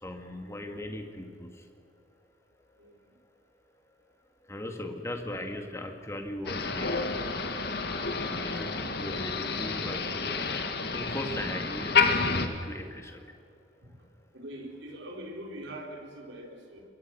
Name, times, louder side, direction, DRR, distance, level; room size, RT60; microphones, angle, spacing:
voice 1, 0.0-1.5 4.5-7.2 8.3-10.4 10.9-13.2, left 1 dB, 15° left, 4 dB, 2.1 m, -38 dB
Motor vehicle (road), 6.5-12.5, left 4 dB, 55° left, 1.9 m, -29 dB
voice 2, 14.3-16.8, right 1 dB, 75° right, 0 dB, 4.5 m, -43 dB
26.0 x 22.5 x 6.3 m, 2.5 s
head